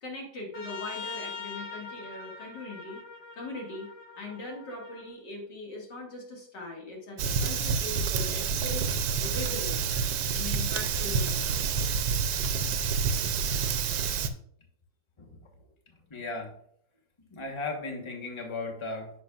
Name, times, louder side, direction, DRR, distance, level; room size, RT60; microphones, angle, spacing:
voice 1, 0.0-3.0 3.3-3.9 4.2-8.9 9.2-9.9 10.3-11.5, left 2 dB, 70° left, -1 dB, 2.7 m, -40 dB
Trumpet, 0.5-5.1, left 5 dB, 45° left, 1.2 m, -42 dB
Fire, 7.2-14.3, right 6 dB, 85° right, 1.4 m, -28 dB
voice 2, 16.1-16.5 17.3-19.1, left 3 dB, 20° left, 2 dB, 1.1 m, -36 dB
10.0 x 6.8 x 2.4 m, 0.69 s
omnidirectional pair, 2.0 m